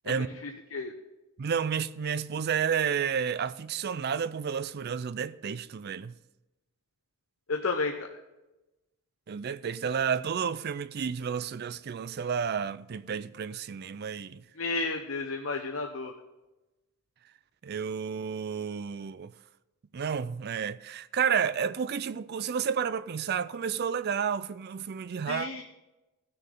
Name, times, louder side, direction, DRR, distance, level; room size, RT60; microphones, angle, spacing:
voice 1, 0.1-0.9 7.5-8.1 14.6-16.1 25.3-25.6, left 3 dB, 65° left, 0.8 m, -32 dB
voice 2, 1.4-6.1 9.3-14.4 17.6-19.3 19.9-25.5, right 7 dB, 45° right, 0.4 m, -31 dB
17.0 x 6.6 x 3.7 m
head